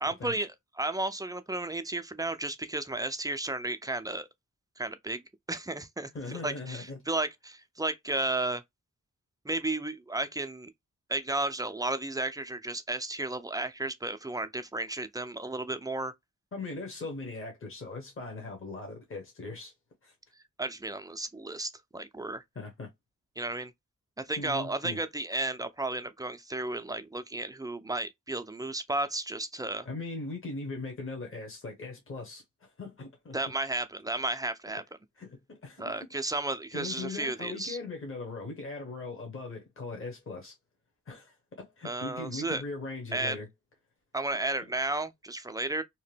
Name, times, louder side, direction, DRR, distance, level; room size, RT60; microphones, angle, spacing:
voice 1, 0.0-4.3 4.8-5.2 5.5-8.6 9.4-10.7 11.1-16.1 20.6-22.4 23.4-23.7 24.2-29.9 33.3-34.8 35.8-37.8 41.8-42.6 43.1-43.4 44.1-45.8, right 2 dB, 10° right, 0.4 m, -33 dB
voice 2, 6.1-7.0 16.5-19.7 20.0-20.1 22.5-22.9 24.4-25.0 29.8-33.4 35.2-36.0 36.7-40.5 41.1-43.5, left 3 dB, 40° left, 1.0 m, -40 dB
2.8 x 2.1 x 3.2 m
cardioid pair, 65°, 31 cm